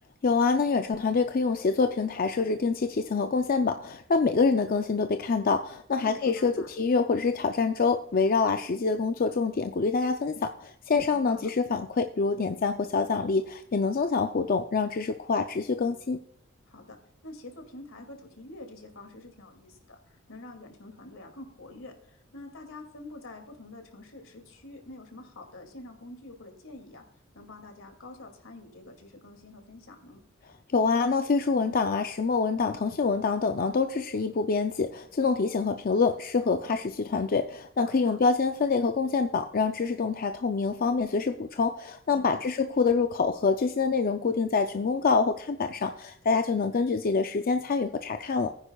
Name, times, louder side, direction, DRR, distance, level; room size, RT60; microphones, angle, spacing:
voice 1, 0.2-16.2 30.7-48.5, left 4 dB, 45° left, 7 dB, 0.5 m, -26 dB
voice 2, 6.0-6.7 11.1-11.5 16.7-17.0 17.2-27.0 27.3-30.2 37.8-38.2 42.1-42.4, left 2 dB, 80° left, 4 dB, 2.4 m, -46 dB
19.0 x 9.8 x 2.3 m, 0.70 s
head